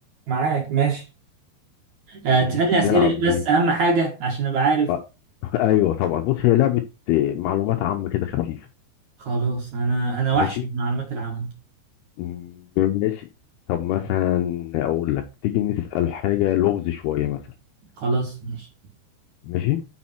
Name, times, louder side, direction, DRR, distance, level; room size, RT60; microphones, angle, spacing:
voice 1, 0.3-1.0 2.1-4.9 9.2-11.5 18.0-18.7, right 3 dB, 55° right, 2.4 m, -22 dB
voice 2, 2.8-3.4 4.9-5.0 5.4-8.6 10.4-10.6 12.2-13.3 13.7-17.4 19.4-19.8, left 13 dB, 80° left, 2.4 m, -23 dB
8.5 x 6.4 x 4.4 m
omnidirectional pair, 5.3 m